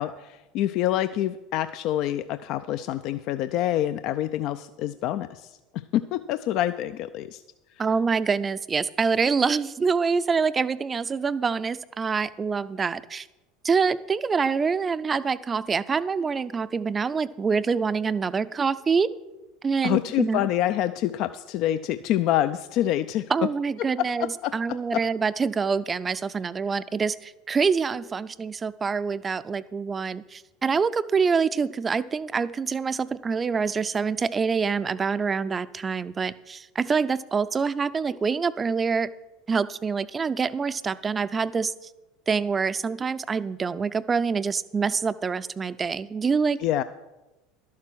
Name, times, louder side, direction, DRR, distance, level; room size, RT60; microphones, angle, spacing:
voice 1, 0.0-7.4 19.8-23.3 24.0-24.5 24.9-25.0 46.6-46.8, left 12 dB, 55° left, 12 dB, 0.4 m, -26 dB
voice 2, 7.8-13.3 13.6-19.1 19.6-20.5 23.3-39.1 39.5-41.9 42.3-46.8, right 5 dB, 25° right, 15 dB, 0.4 m, -26 dB
12.0 x 7.4 x 6.1 m, 1.1 s
hypercardioid pair, 75°, 0 cm